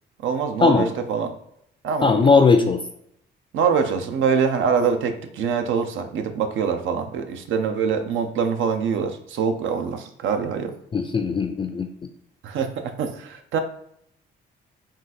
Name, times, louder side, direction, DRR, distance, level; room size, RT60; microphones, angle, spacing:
voice 1, 0.2-1.3 1.8-2.3 3.5-10.7 12.4-13.6, right 6 dB, 75° right, 7 dB, 0.6 m, -24 dB
voice 2, 2.0-2.8 10.9-11.9, left 4 dB, 25° left, 6 dB, 0.4 m, -18 dB
3.9 x 2.5 x 4.0 m, 0.72 s
cardioid pair, 90°, 20 cm